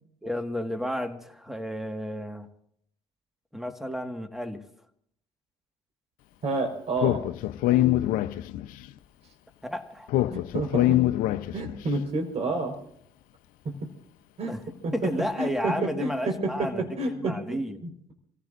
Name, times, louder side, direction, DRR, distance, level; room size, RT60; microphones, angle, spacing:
voice 1, 0.2-2.5 3.5-4.6 9.6-10.1 14.5-14.6 14.9-17.8, equal, ahead, 7 dB, 1.8 m, -32 dB
voice 2, 6.4-7.2 10.3-10.9 11.5-12.7 13.6-13.9 14.4-14.5 14.8-18.1, right 2 dB, 45° right, 4 dB, 4.8 m, -30 dB
Speech, 7.0-8.8 10.1-11.8, left 14 dB, 65° left, 0.8 m, -24 dB
28.5 x 16.0 x 2.6 m, 0.68 s
hypercardioid pair, 70°, 15 cm